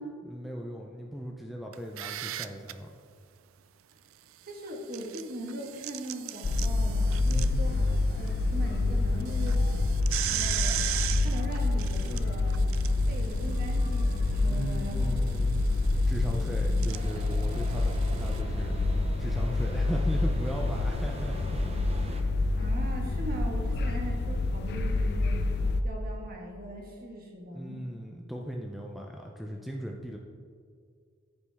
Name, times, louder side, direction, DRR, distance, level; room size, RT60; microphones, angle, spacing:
voice 1, 0.2-2.9 7.2-7.6 14.4-15.6 16.1-18.8 19.2-21.6 27.5-30.2, equal, ahead, 0 dB, 0.5 m, -37 dB
sound 1, 1.7-2.7 4.7-8.3 8.7-8.8 9.2-18.4, right 13 dB, 75° right, 0.4 m, -38 dB
voice 2, 4.5-9.6 10.3-12.7 13.1-15.3 16.2-16.8 22.6-25.4 25.8-27.8, right 1 dB, 45° right, 0 dB, 1.5 m, -40 dB
sound 2, 6.4-25.8, left 2 dB, 50° left, 0.5 m, -27 dB
sound 3, 16.9-22.2, right 1 dB, 30° right, 0.7 m, -44 dB
14.0 x 5.3 x 3.5 m, 2.1 s
head